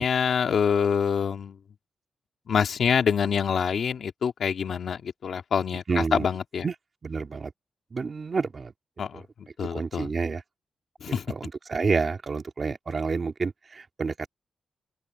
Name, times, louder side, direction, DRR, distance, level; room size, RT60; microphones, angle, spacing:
voice 1, 0.0-1.6 2.5-5.8 6.1-6.6 9.0-9.2 9.6-10.1 11.0-11.2, left 7 dB, 70° left, 2.4 m, -25 dB
voice 2, 5.9-6.3 6.6-6.7 7.0-7.5 7.9-8.7 9.1-9.3 9.7-10.4 11.1-14.3, right 4 dB, 40° right, 2.5 m, -29 dB
wide cardioid pair, 130°, 0 cm